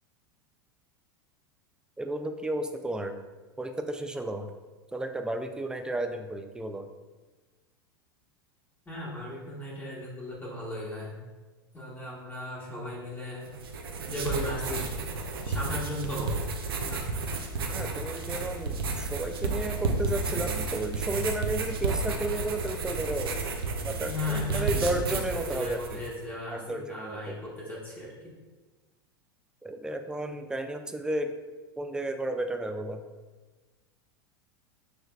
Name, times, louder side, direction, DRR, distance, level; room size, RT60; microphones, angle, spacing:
voice 1, 2.0-3.1 3.6-4.5 4.9-6.9 17.7-23.4 23.8-26.0 26.5-27.4 29.6-31.3 31.8-33.0, right 2 dB, 5° right, 6 dB, 0.4 m, -33 dB
voice 2, 8.9-11.2 11.7-13.5 14.1-14.9 15.4-16.4 16.8-17.1 24.1-28.3, left 1 dB, 15° left, -6 dB, 1.1 m, -36 dB
sound 1, 13.5-26.2, right 3 dB, 75° right, 0.6 m, -32 dB
6.5 x 3.2 x 2.3 m, 1.3 s
hypercardioid pair, 90°, 12 cm